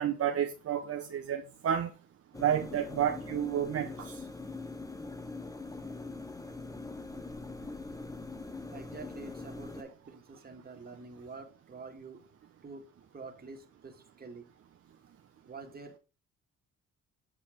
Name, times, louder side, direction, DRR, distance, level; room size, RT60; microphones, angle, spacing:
voice 1, 0.0-1.9 2.4-4.2, right 9 dB, 50° right, 1.0 m, -30 dB
sound 1, 2.3-9.8, left 3 dB, 10° left, 1.0 m, -42 dB
voice 2, 8.7-12.3 12.6-14.5 15.5-16.0, right 4 dB, 30° right, 2.1 m, -47 dB
8.4 x 4.8 x 5.2 m
cardioid pair, 90°, 30 cm